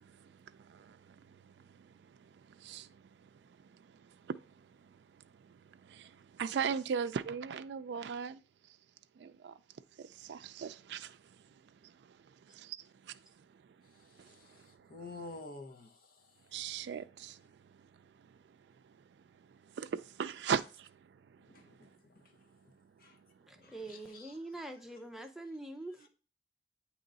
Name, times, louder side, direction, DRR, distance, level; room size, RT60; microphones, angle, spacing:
voice 1, 0.0-3.3 3.7-4.4 4.8-5.0 5.4-8.4 9.2-9.5 10.0-11.2 11.8-12.2 12.5-13.2 14.2-14.7 16.5-17.4 19.8-20.9 21.4-21.5, right 7 dB, 80° right, 0.3 m, -39 dB
voice 2, 14.0-16.4 21.5-22.2 23.0-23.2 23.6-24.4, left 2 dB, 55° left, 1.0 m, -50 dB
voice 3, 23.5-26.1, right 2 dB, ahead, 0.6 m, -44 dB
8.6 x 3.1 x 3.9 m
head